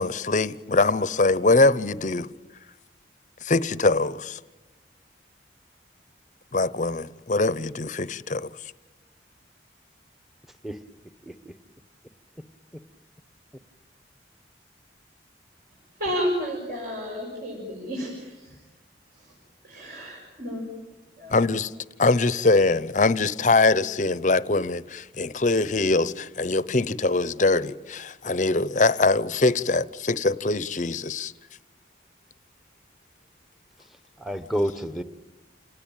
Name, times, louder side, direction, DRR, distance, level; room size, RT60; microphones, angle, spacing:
voice 1, 0.0-2.3 3.4-4.4 6.5-8.5 21.3-21.7 22.0-31.3, left 3 dB, 45° left, 0.8 m, -23 dB
voice 2, 11.2-11.6 12.7-12.8 34.2-35.0, equal, ahead, 1.1 m, -29 dB
voice 3, 16.0-18.6 19.1-19.3 19.6-20.6 21.2-21.4, equal, 55° right, 6.7 m, -31 dB
28.5 x 19.0 x 9.1 m
head